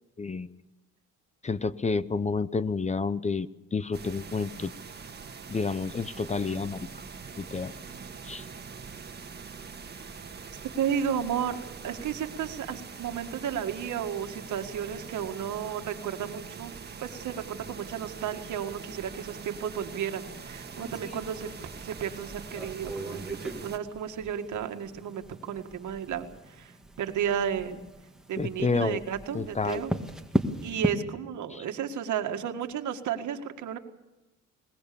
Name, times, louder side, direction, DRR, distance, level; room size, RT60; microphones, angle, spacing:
voice 1, 0.2-0.5 1.4-4.7 5.5-6.9 7.4-7.7 8.2-8.4 28.4-29.0 29.3-29.8 31.5-31.6, left 4 dB, 25° left, 16 dB, 0.7 m, -30 dB
sound 1, 3.9-23.8, right 5 dB, 35° right, 1.6 m, -43 dB
voice 2, 10.8-16.7 17.0-21.5 21.8-27.8 28.3-29.9 30.6-33.8, right 8 dB, 75° right, 6 dB, 1.9 m, -33 dB
sound 2, 20.5-30.9, equal, ahead, 1.9 m, -37 dB
22.0 x 20.0 x 7.0 m, 1.0 s
cardioid pair, 90°, 30 cm